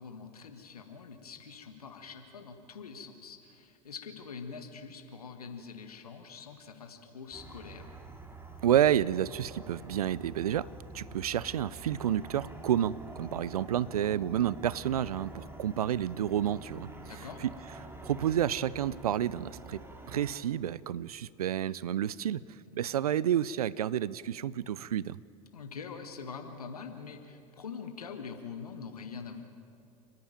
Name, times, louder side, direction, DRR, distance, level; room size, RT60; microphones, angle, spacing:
voice 1, 0.0-7.9 17.1-17.4 25.5-29.4, left 5 dB, 85° left, 6 dB, 1.7 m, -44 dB
sound 1, 7.3-20.4, right 2 dB, 10° right, 2.5 m, -47 dB
voice 2, 8.6-16.9 17.2-17.5 18.0-22.4 22.7-25.2, right 10 dB, 80° right, 21 dB, 0.5 m, -30 dB
29.5 x 10.5 x 9.1 m, 2.6 s
figure-of-eight pair, 75°, 19 cm